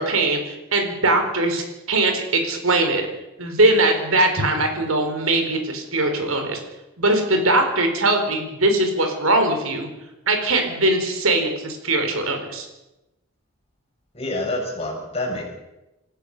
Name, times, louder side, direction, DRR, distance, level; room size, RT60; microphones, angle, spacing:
voice 1, 0.0-3.1 3.4-6.6 7.0-9.9 10.3-12.7, right 2 dB, 85° right, 5 dB, 4.5 m, -21 dB
voice 2, 14.1-15.4, left 1 dB, 30° left, -1 dB, 7.0 m, -27 dB
27.5 x 15.0 x 6.8 m, 0.98 s
head